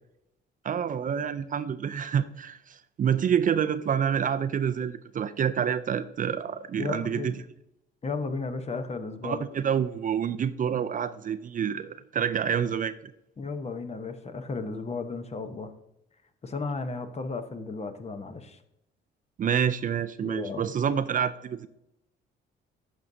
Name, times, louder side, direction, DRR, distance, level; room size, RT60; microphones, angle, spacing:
voice 1, 0.6-7.3 9.2-13.0 19.4-21.7, right 8 dB, 45° right, 12 dB, 0.4 m, -28 dB
voice 2, 6.8-7.3 8.0-9.5 13.4-15.7 16.4-18.6 20.2-20.7, left 4 dB, 35° left, 8 dB, 0.9 m, -34 dB
11.5 x 6.2 x 2.7 m, 0.83 s
cardioid pair, 90°, 20 cm